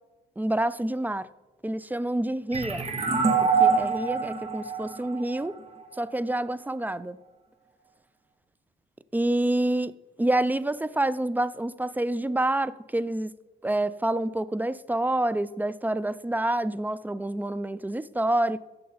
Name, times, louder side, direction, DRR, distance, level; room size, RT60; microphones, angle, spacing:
voice 1, 0.4-1.3 1.6-2.9 3.4-5.5 6.0-7.2 9.1-13.3 13.6-18.7, right 1 dB, 10° right, 0.4 m, -27 dB
sound 1, 2.5-5.9, right 5 dB, 30° right, 2.1 m, -25 dB
14.5 x 6.8 x 4.0 m
cardioid pair, 90°, 20 cm